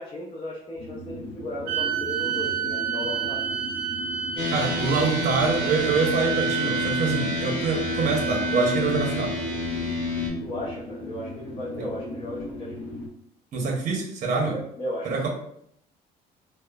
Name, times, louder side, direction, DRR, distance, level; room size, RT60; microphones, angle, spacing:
voice 1, 0.0-3.5 10.4-12.8 14.5-15.3, left 1 dB, 35° left, -5 dB, 0.6 m, -35 dB
sound 1, 0.8-13.1, left 1 dB, 85° left, 0.6 m, -38 dB
sound 2, 1.7-9.2, right 9 dB, 85° right, 0.4 m, -30 dB
sound 3, 4.4-10.3, left 2 dB, 10° left, 1.3 m, -29 dB
voice 2, 4.5-9.3 11.8-11.9 13.5-14.5 15.0-15.3, right 4 dB, 45° right, 0 dB, 0.7 m, -25 dB
3.0 x 2.1 x 2.2 m, 0.69 s
cardioid pair, 110°, 17 cm